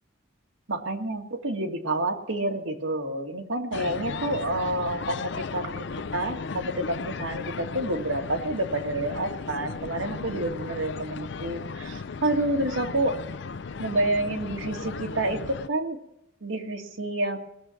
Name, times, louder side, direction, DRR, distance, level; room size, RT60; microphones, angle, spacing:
voice 1, 0.7-5.8 6.1-13.2 13.8-16.0 16.4-17.4, right 1 dB, 70° right, 3 dB, 1.8 m, -29 dB
sound 1, 3.7-15.7, left 5 dB, 55° left, 0.5 m, -36 dB
18.5 x 7.0 x 7.6 m, 0.84 s
head